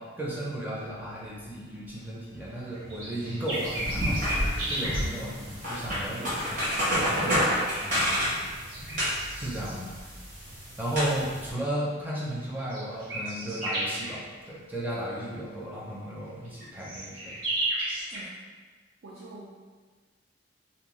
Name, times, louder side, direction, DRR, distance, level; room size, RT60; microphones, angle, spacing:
voice 1, 0.0-8.2 9.3-9.9 10.8-17.4, right 1 dB, 10° right, -6 dB, 0.5 m, -35 dB
sound 1, 0.8-9.2, left 1 dB, 80° left, 0.5 m, -44 dB
sound 2, 2.5-5.0 7.4-7.5 8.4-9.7 11.4-11.5 12.4-14.2 16.4-18.2, right 1 dB, 80° right, 1.2 m, -33 dB
sound 3, 3.5-11.5, equal, 45° right, 1.0 m, -30 dB
voice 2, 19.0-19.5, right 2 dB, 65° right, -6 dB, 0.4 m, -44 dB
2.6 x 2.0 x 3.0 m, 1.4 s
head